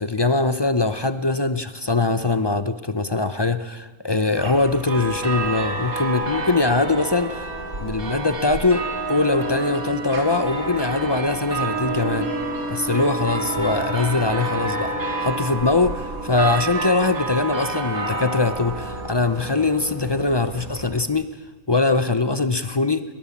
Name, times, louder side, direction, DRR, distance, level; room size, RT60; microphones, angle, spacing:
voice 1, 0.0-7.5 7.8-12.3 12.7-14.9 15.2-21.3 21.7-23.0, left 3 dB, 30° left, 12 dB, 0.4 m, -22 dB
sound 1, 4.4-21.0, right 2 dB, 65° right, 2.9 m, -29 dB
22.0 x 19.5 x 7.3 m, 1.2 s
omnidirectional pair, 1.6 m